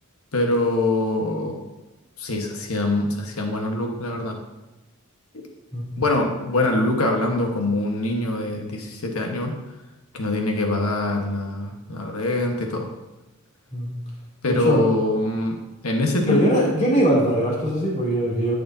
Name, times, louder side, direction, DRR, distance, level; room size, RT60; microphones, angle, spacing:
voice 1, 0.3-1.6 2.2-4.4 6.0-9.5 10.1-12.9 14.4-15.6 15.8-16.7, left 2 dB, 85° left, 2 dB, 1.3 m, -24 dB
voice 2, 14.5-14.8 16.3-18.5, equal, 35° left, -5 dB, 2.7 m, -21 dB
12.5 x 6.6 x 2.7 m, 1.1 s
head